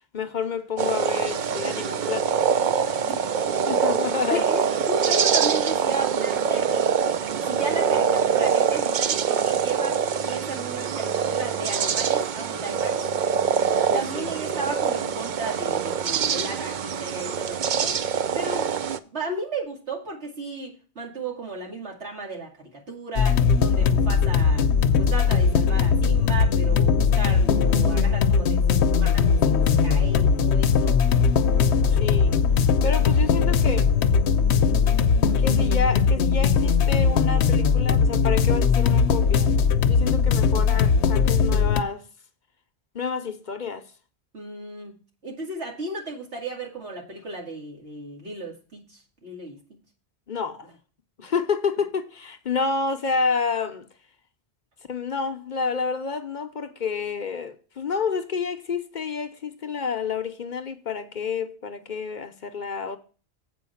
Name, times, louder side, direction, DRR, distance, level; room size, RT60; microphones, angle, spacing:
voice 1, 0.1-3.0 3.7-4.5 13.9-14.3 31.9-32.4 32.8-33.9 35.4-39.5 39.9-42.0 42.9-43.9 50.3-50.7 51.2-53.9 54.9-63.0, left 5 dB, 50° left, 0.8 m, -29 dB
sound 1, 0.8-19.0, right 7 dB, 55° right, 0.6 m, -24 dB
voice 2, 4.3-6.9 7.4-13.1 13.9-18.0 18.3-18.7 19.1-24.7 25.0-31.0 35.6-35.7 44.3-49.6, right 3 dB, 90° right, 2.7 m, -34 dB
sound 2, 23.2-41.8, left 6 dB, 85° left, 0.9 m, -20 dB
7.8 x 5.2 x 7.0 m
omnidirectional pair, 1.1 m